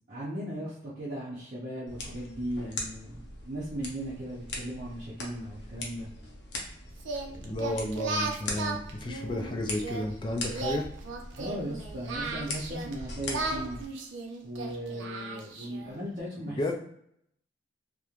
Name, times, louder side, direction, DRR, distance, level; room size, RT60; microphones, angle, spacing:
voice 1, 0.1-6.1 11.4-13.8 14.4-16.8, right 1 dB, 45° right, -9 dB, 0.6 m, -37 dB
sound 1, 1.9-13.9, left 2 dB, 65° left, 0.6 m, -41 dB
Singing, 7.0-10.0 10.5-12.9 13.3-15.9, right 3 dB, 90° right, 0.5 m, -36 dB
voice 2, 7.4-10.9 16.5-16.8, left 1 dB, 25° left, 3 dB, 0.3 m, -32 dB
3.0 x 2.1 x 2.4 m, 0.71 s
head